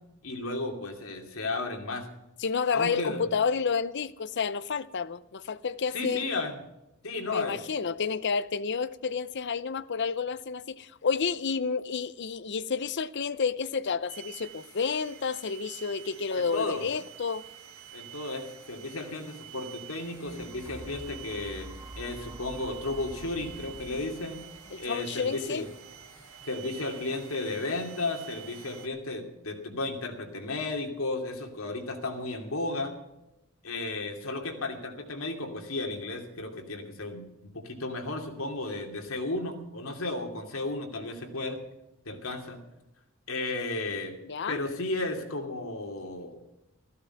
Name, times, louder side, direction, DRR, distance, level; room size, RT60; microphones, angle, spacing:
voice 1, 0.2-2.1 2.7-3.2 5.9-6.6 7.0-7.6 16.3-16.9 17.9-21.7 21.9-24.4 24.8-25.7 26.5-32.9 33.6-37.3 37.5-41.6 42.0-42.6 43.3-44.1 44.5-46.4, left 2 dB, 75° left, 2.7 m, -34 dB
voice 2, 2.4-6.2 7.2-17.4 24.7-25.7 44.2-44.6, left 5 dB, 55° left, 0.6 m, -30 dB
sound 1, 14.1-28.9, right 9 dB, 85° right, 2.8 m, -48 dB
sound 2, 19.8-27.9 28.5-28.6, right 1 dB, 15° right, 0.8 m, -48 dB
14.5 x 12.5 x 5.8 m
head